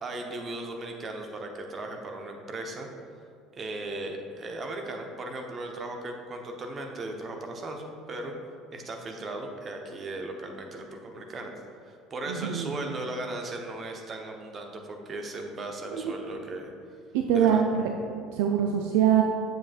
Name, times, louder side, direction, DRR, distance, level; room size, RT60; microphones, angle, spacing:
voice 1, 0.0-2.9 3.5-8.4 8.7-11.5 11.8-16.7 17.3-17.6, right 2 dB, 35° right, 3 dB, 0.9 m, -37 dB
voice 2, 12.3-12.9 15.9-16.1 17.1-17.8 18.1-19.2, right 9 dB, 60° right, 2 dB, 0.4 m, -24 dB
7.9 x 7.3 x 2.4 m, 2.3 s
figure-of-eight pair, 65°, 0 cm